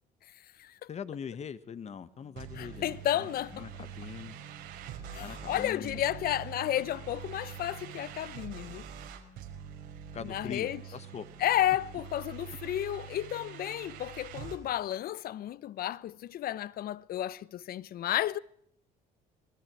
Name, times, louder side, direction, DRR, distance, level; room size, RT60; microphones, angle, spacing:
voice 1, 0.9-3.3 3.5-4.4 5.2-6.0 10.1-11.3, left 7 dB, 40° left, 1.5 m, -42 dB
Organ, 1.9-12.5, left 3 dB, 35° right, 2.5 m, -59 dB
sound 1, 2.4-14.6, right 9 dB, 90° right, 5.5 m, -45 dB
voice 2, 2.5-3.7 5.1-8.8 10.2-10.8 11.4-18.4, left 12 dB, 60° left, 0.9 m, -32 dB
27.0 x 19.5 x 6.3 m
cardioid pair, 110°, 17 cm